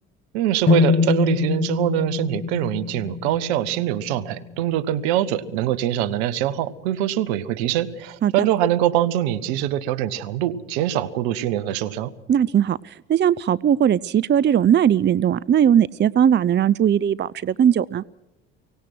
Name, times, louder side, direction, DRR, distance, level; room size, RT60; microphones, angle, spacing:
voice 1, 0.3-12.1, right 12 dB, 75° right, 12 dB, 1.4 m, -23 dB
sound 1, 0.7-4.6, left 5 dB, 30° left, 1.6 m, -24 dB
voice 2, 12.3-18.0, right 9 dB, 35° right, 19 dB, 0.6 m, -19 dB
24.0 x 18.5 x 6.2 m, 0.89 s
hypercardioid pair, 60°, 32 cm